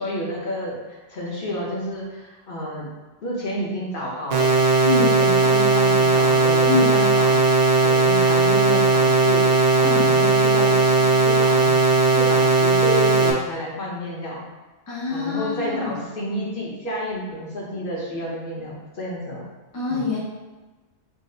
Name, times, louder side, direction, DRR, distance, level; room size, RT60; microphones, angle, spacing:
voice 1, 0.0-2.9 3.2-7.4 7.8-9.5 9.8-11.7 12.1-14.4 15.1-19.4 19.9-20.0, equal, 55° left, -5 dB, 1.0 m, -30 dB
sound 1, 4.3-13.3, right 3 dB, 80° right, 0.9 m, -17 dB
voice 2, 6.6-7.0 9.8-10.1 14.9-16.0 19.7-20.2, left 4 dB, 25° left, -5 dB, 0.6 m, -25 dB
4.0 x 2.0 x 3.8 m, 1.2 s
omnidirectional pair, 1.1 m